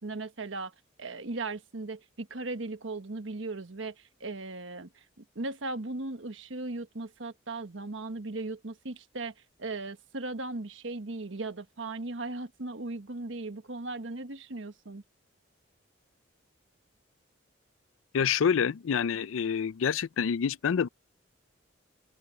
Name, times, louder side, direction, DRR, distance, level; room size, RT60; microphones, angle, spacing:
voice 1, 0.0-0.7 1.0-4.9 5.3-9.3 9.6-15.0, right 2 dB, 75° right, 1.3 m, -37 dB
voice 2, 18.1-20.9, left 7 dB, 85° left, 0.4 m, -27 dB
head